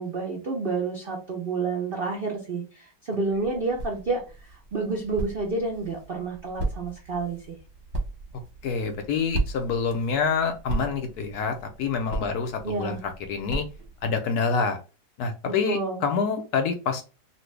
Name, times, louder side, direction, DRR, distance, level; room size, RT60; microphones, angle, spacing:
voice 1, 0.0-7.6 12.6-13.0 15.5-16.0, right 3 dB, 80° right, 0 dB, 0.5 m, -29 dB
sound 1, 3.3-14.2, right 2 dB, 50° right, 1.0 m, -36 dB
voice 2, 8.6-13.7 14.0-14.8 15.2-17.0, left 5 dB, 70° left, 6 dB, 1.0 m, -27 dB
2.9 x 2.6 x 3.1 m, 0.32 s
omnidirectional pair, 2.0 m